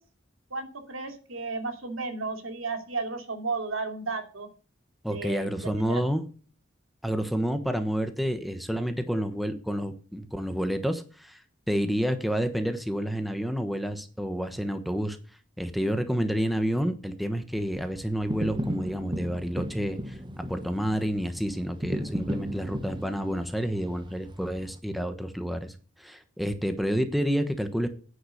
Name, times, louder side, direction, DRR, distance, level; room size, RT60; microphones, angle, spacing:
voice 1, 0.5-4.5 5.1-6.0, right 3 dB, 80° right, 6 dB, 2.8 m, -33 dB
voice 2, 5.0-6.2 7.0-11.4 11.7-15.2 15.6-20.2 20.5-27.9, equal, ahead, 8 dB, 1.2 m, -29 dB
sound 1, 17.5-24.8, equal, 25° right, 0.9 m, -36 dB
9.9 x 8.0 x 6.5 m, 0.38 s
head